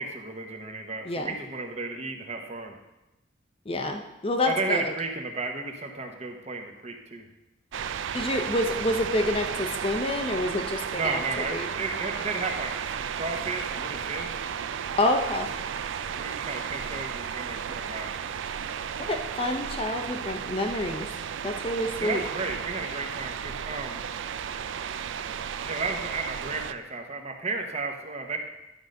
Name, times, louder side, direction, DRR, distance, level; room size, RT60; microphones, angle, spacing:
voice 1, 0.0-2.7 4.5-7.2 10.9-14.4 16.1-18.1 22.0-24.0 25.6-28.4, right 3 dB, 35° right, 3 dB, 1.0 m, -33 dB
voice 2, 3.7-4.8 8.1-11.2 11.5-11.7 15.0-15.5 19.0-21.1 21.4-22.2, left 1 dB, 30° left, 4 dB, 0.6 m, -28 dB
sound 1, 7.7-26.7, right 7 dB, 75° right, 0.4 m, -34 dB
11.5 x 4.0 x 6.4 m, 0.97 s
head